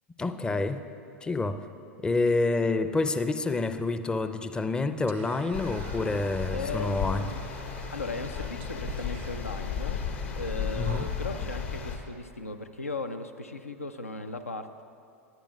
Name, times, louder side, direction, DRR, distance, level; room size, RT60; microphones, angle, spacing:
voice 1, 0.2-0.8 1.2-1.7 2.0-7.2 10.8-11.1, left 3 dB, 10° left, 10 dB, 0.4 m, -28 dB
Whispering, 5.1-11.5, right 9 dB, 60° right, 0.4 m, -48 dB
sound 1, 5.5-12.0, left 7 dB, 65° left, 1.4 m, -34 dB
voice 2, 6.5-7.5 7.9-10.0 10.3-14.8, left 3 dB, 90° left, 8 dB, 0.5 m, -37 dB
19.0 x 10.0 x 2.3 m, 2.6 s
figure-of-eight pair, 90°, 7 cm